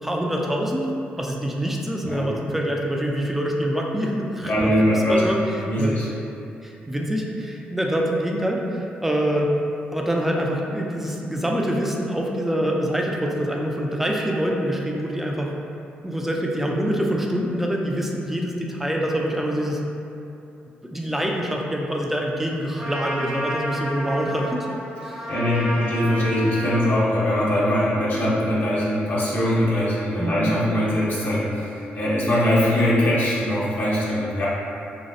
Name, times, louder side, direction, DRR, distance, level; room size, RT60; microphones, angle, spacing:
voice 1, 0.0-0.9 1.2-5.4 5.8-5.9 6.6-9.5 9.9-15.5 16.0-19.8 20.8-24.7 25.0-25.2 30.2-30.6, equal, 5° right, -1 dB, 0.3 m, -25 dB
voice 2, 4.4-5.3 5.6-6.1 25.3-34.5, left 1 dB, 45° left, -8 dB, 0.7 m, -22 dB
Trumpet, 22.8-27.1, equal, 40° right, 0.7 m, -31 dB
2.5 x 2.0 x 2.5 m, 2.7 s
supercardioid pair, 50°, 4 cm